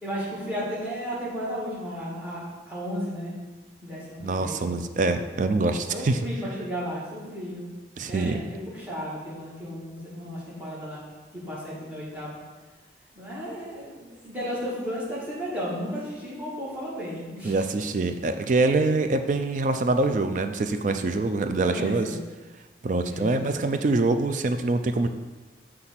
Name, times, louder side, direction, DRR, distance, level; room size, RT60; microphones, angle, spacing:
voice 1, 0.0-3.3 3.8-4.7 5.6-7.7 8.1-11.0 11.3-12.4 13.2-17.6 21.7-22.2 23.0-23.5, equal, 10° right, -7 dB, 1.8 m, -34 dB
voice 2, 4.2-6.2 8.0-8.4 17.4-22.1 22.8-25.1, right 3 dB, 45° right, 8 dB, 0.3 m, -24 dB
6.0 x 3.3 x 5.7 m, 1.3 s
head